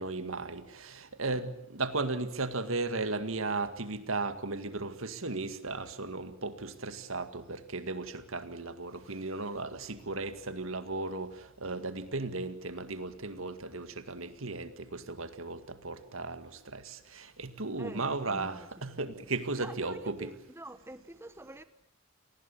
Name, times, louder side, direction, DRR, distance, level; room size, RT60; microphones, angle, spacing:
voice 1, 0.0-20.3, right 3 dB, 75° right, 2.0 m, -36 dB
voice 2, 17.8-18.7 19.6-21.6, right 1 dB, 10° right, 1.0 m, -46 dB
28.5 x 19.5 x 8.4 m
head